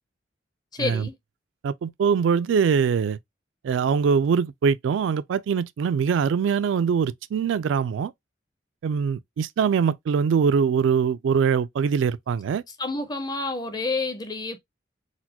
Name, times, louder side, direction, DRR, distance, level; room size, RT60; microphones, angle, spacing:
voice 1, 0.7-1.1 12.8-14.6, left 3 dB, 20° left, 0.5 m, -29 dB
voice 2, 1.6-3.2 3.6-8.1 8.8-12.6, right 6 dB, 85° right, 0.3 m, -23 dB
4.0 x 2.1 x 2.8 m
head